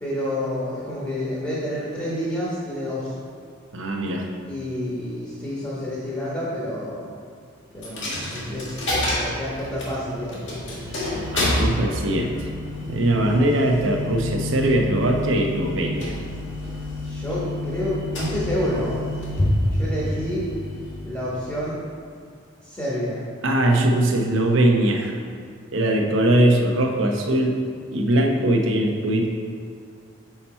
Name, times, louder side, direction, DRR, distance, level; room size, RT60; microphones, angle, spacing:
voice 1, 0.0-3.1 4.4-7.1 7.7-10.9 17.0-19.0 19.7-20.5 21.0-21.8 22.6-23.2, equal, 15° left, -7 dB, 1.2 m, -29 dB
voice 2, 3.7-4.3 11.3-12.5 12.9-16.2 23.4-25.2 25.7-27.6 27.9-29.3, right 1 dB, 65° right, 2 dB, 0.8 m, -21 dB
Coin (dropping), 7.8-21.5, left 1 dB, 55° left, 1.8 m, -28 dB
5.8 x 5.7 x 4.3 m, 2.2 s
head